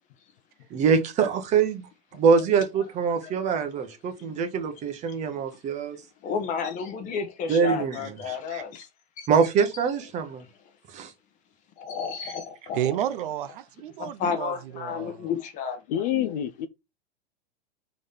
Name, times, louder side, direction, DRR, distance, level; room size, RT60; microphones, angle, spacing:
voice 1, 0.7-1.9 2.2-6.0 7.5-8.0 8.3-8.6 9.3-10.4 10.9-11.1, right 6 dB, 20° right, 0.9 m, -24 dB
voice 2, 3.2-3.7 5.3-5.4 6.2-8.9 9.2-9.3 11.8-12.8 14.0-16.3, left 6 dB, 25° left, 1.0 m, -32 dB
voice 3, 12.7-15.3, right 11 dB, 50° right, 0.6 m, -31 dB
voice 4, 15.9-16.7, left 10 dB, 40° left, 0.5 m, -27 dB
5.0 x 4.0 x 5.5 m
supercardioid pair, 160°, 32 cm